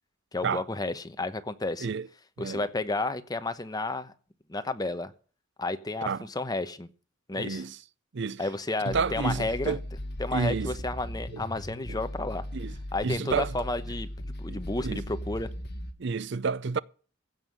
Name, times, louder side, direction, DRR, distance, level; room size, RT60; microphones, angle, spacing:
voice 1, 0.3-1.9 2.4-4.1 4.5-5.1 5.6-6.9 7.3-7.6 8.4-9.8 10.2-12.4 12.9-15.5, left 2 dB, 20° left, 1.0 m, -32 dB
voice 2, 7.3-7.8 8.1-8.4 8.9-9.8 10.3-10.7 11.3-11.4 11.9-12.0 12.5-12.7 13.0-13.5 14.5-15.0 16.0-16.8, right 5 dB, 60° right, 0.5 m, -30 dB
sound 1, 8.9-15.9, equal, 55° left, 1.6 m, -38 dB
16.0 x 5.7 x 9.1 m
head